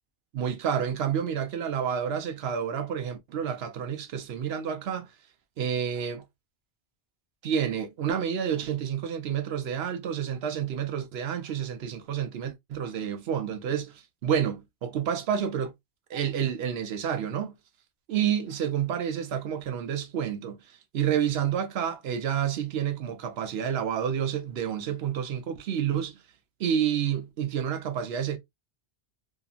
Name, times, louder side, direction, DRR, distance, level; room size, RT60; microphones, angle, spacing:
voice 1, 0.3-5.1 5.6-6.2 7.4-15.7 16.1-17.5 18.1-20.6 20.9-26.2 26.6-28.4, right 8 dB, 70° right, 0.8 m, -29 dB
2.8 x 2.4 x 2.3 m
omnidirectional pair, 1.1 m